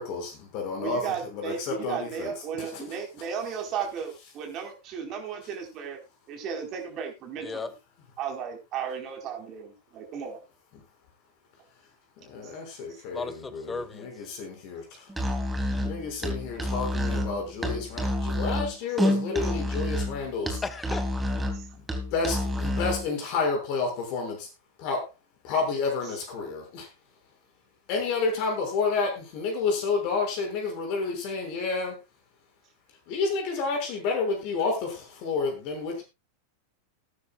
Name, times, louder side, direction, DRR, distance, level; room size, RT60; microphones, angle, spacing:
voice 1, 0.0-1.0 1.3-2.3 12.3-14.8 15.8-20.6 22.1-24.5 24.8-25.0 25.4-26.9 27.9-32.0 33.1-36.0, left 4 dB, 45° left, 3 dB, 6.1 m, -30 dB
voice 2, 0.8-6.0 6.3-7.7 8.2-10.4 19.4-19.5 21.4-21.6 26.1-26.2, right 7 dB, 35° right, 2 dB, 4.5 m, -35 dB
voice 3, 13.1-14.1 20.6-21.0, left 4 dB, 15° left, 12 dB, 1.6 m, -34 dB
Musical instrument, 15.1-23.1, equal, 10° right, 3.1 m, -29 dB
20.0 x 10.0 x 2.4 m, 0.25 s
figure-of-eight pair, 90°, 0 cm